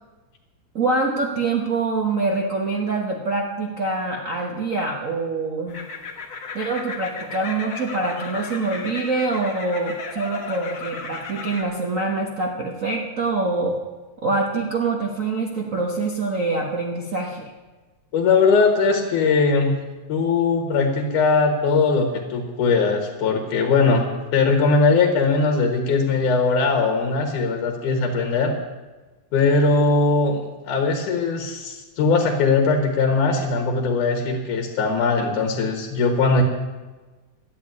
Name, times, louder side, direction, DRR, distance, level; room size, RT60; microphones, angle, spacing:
voice 1, 0.7-5.8 6.5-13.8 14.2-17.5, right 3 dB, 65° right, 0 dB, 0.8 m, -25 dB
sound 1, 5.7-11.6, left 4 dB, 45° left, 1.1 m, -35 dB
voice 2, 18.1-19.8 20.1-24.1 24.3-28.5 29.3-36.4, left 4 dB, 90° left, 3 dB, 2.9 m, -20 dB
12.0 x 9.1 x 9.5 m, 1.3 s
omnidirectional pair, 3.4 m